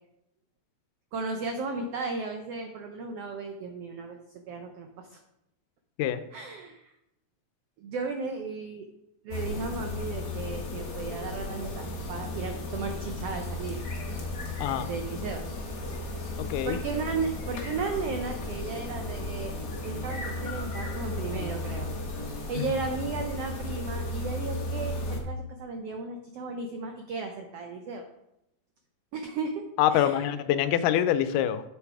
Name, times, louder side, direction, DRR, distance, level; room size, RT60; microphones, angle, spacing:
voice 1, 1.1-4.2 4.5-5.2 6.3-6.9 7.8-8.9 9.2-13.8 14.9-15.4 16.7-19.5 19.8-21.9 22.5-28.0 29.1-30.3, right 4 dB, 85° right, 5 dB, 1.3 m, -35 dB
sound 1, 9.3-25.2, left 2 dB, 40° left, 1.6 m, -35 dB
voice 2, 14.6-14.9 16.4-16.8 22.6-22.7 29.8-31.6, left 11 dB, 85° left, 12 dB, 2.2 m, -25 dB
8.4 x 6.6 x 4.7 m, 0.85 s
omnidirectional pair, 3.7 m